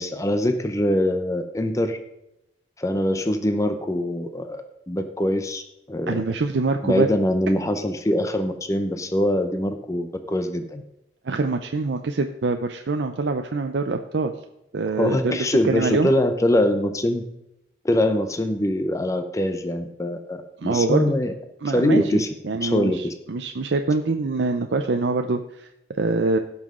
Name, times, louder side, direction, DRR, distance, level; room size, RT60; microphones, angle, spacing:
voice 1, 0.0-2.0 2.8-5.6 5.9-6.2 6.8-10.8 15.0-17.2 17.8-21.3 21.7-22.3 22.6-23.1, left 1 dB, 20° left, 7 dB, 0.6 m, -23 dB
voice 2, 6.1-7.1 11.2-14.3 14.7-16.1 20.6-21.1 21.6-25.7 26.0-26.4, right 3 dB, 80° right, 5 dB, 0.6 m, -24 dB
16.5 x 5.7 x 3.7 m, 0.87 s
head